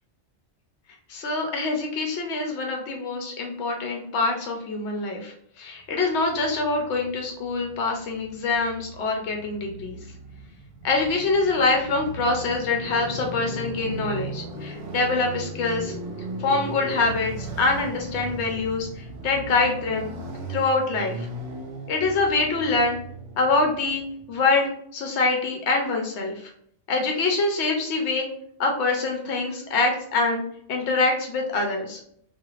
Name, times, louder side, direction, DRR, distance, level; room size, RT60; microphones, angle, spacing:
voice 1, 1.1-10.0 10.8-15.9 16.4-20.1 20.5-21.3 21.9-23.0 23.4-24.0 24.3-26.5 26.9-28.3 28.6-30.4 30.7-32.0, left 3 dB, 85° left, 2 dB, 0.9 m, -25 dB
Motorcycle, 6.2-24.4, right 2 dB, 65° right, 0.8 m, -37 dB
2.4 x 2.4 x 3.0 m, 0.66 s
omnidirectional pair, 1.1 m